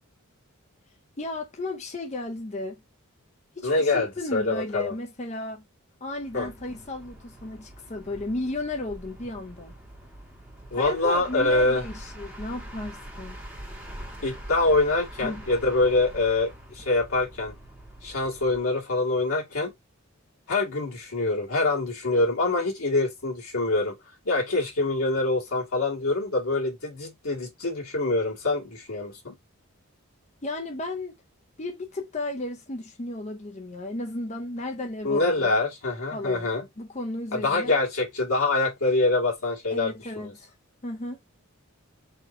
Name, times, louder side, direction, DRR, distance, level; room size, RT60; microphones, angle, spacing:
voice 1, 1.2-2.8 3.6-5.7 6.0-9.7 10.7-13.4 15.2-15.5 30.4-31.1 31.6-35.5 36.1-36.5 36.8-37.8 39.7-40.5 40.8-41.2, left 2 dB, 30° left, 0.6 m, -34 dB
voice 2, 3.6-4.9 6.3-6.5 10.7-11.8 14.2-17.5 18.0-19.7 20.5-24.0 24.2-29.3 35.0-36.7 37.3-40.3, left 2 dB, 80° left, 2.1 m, -25 dB
sound 1, 6.1-18.8, right 1 dB, 5° right, 1.5 m, -44 dB
4.3 x 2.8 x 4.3 m
head